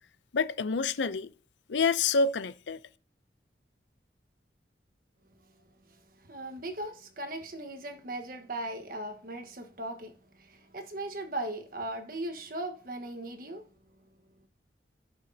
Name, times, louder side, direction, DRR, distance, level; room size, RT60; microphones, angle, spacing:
voice 1, 0.3-1.3 1.7-2.8, left 4 dB, 90° left, 0.6 m, -27 dB
voice 2, 6.2-10.1 10.4-13.6, right 1 dB, 50° right, 1.3 m, -38 dB
17.0 x 6.2 x 2.8 m
head